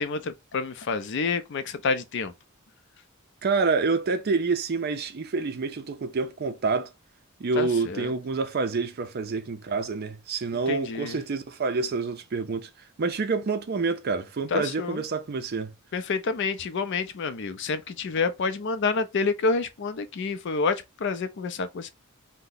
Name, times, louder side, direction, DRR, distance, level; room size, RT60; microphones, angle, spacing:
voice 1, 0.0-2.3 7.6-8.1 10.7-11.2 14.5-15.0 15.9-21.9, left 4 dB, 55° left, 0.4 m, -28 dB
voice 2, 3.4-6.9 7.4-12.7 13.0-15.7, right 4 dB, 50° right, 0.5 m, -27 dB
2.8 x 2.1 x 3.8 m
head